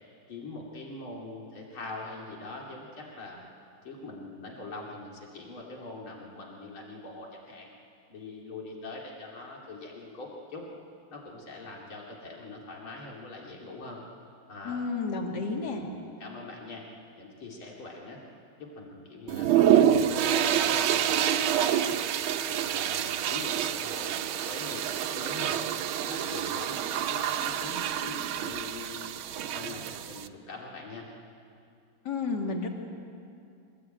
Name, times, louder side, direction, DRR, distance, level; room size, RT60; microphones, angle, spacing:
voice 1, 0.3-3.4 3.8-7.7 8.1-10.6 11.1-14.0 14.5-14.9 15.2-16.8 17.2-18.2 18.6-22.0 22.5-25.6 26.0-29.1 29.5-31.1, left 2 dB, 80° left, -2 dB, 3.6 m, -43 dB
voice 2, 14.6-15.8 32.0-32.7, left 4 dB, 50° left, 1 dB, 2.7 m, -31 dB
sound 1, 19.3-30.3, right 10 dB, 80° right, 1.6 m, -27 dB
24.5 x 19.0 x 9.0 m, 2.5 s
omnidirectional pair, 2.3 m